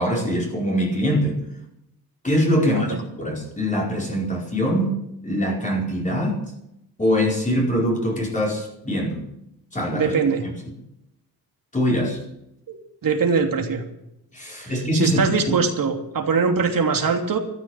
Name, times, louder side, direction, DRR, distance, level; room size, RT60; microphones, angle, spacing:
voice 1, 0.0-1.4 2.2-6.4 7.0-9.2 9.7-10.1 10.4-10.5 11.7-12.2 14.3-15.6, equal, 20° left, -2 dB, 4.7 m, -23 dB
voice 2, 2.6-3.0 9.9-10.4 12.7-13.8 14.6-17.4, right 5 dB, 60° right, 3 dB, 3.2 m, -22 dB
13.5 x 13.5 x 7.3 m, 0.81 s
wide cardioid pair, 130°, 38 cm